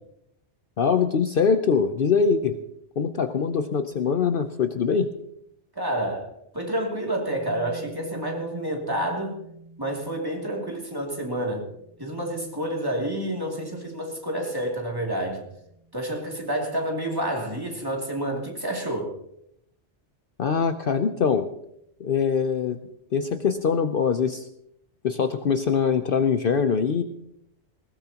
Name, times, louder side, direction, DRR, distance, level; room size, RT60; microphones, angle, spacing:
voice 1, 0.8-2.6 3.0-5.1 20.4-21.5 22.0-22.8 23.1-24.5 25.0-27.0, left 6 dB, 55° left, 8 dB, 0.8 m, -23 dB
voice 2, 5.7-9.4 9.8-11.7 12.0-15.5 15.9-19.1, right 1 dB, 20° right, -1 dB, 2.7 m, -29 dB
sound 1, 7.3-16.7, right 2 dB, 60° right, 1.8 m, -49 dB
20.5 x 17.0 x 2.9 m, 0.76 s
omnidirectional pair, 1.2 m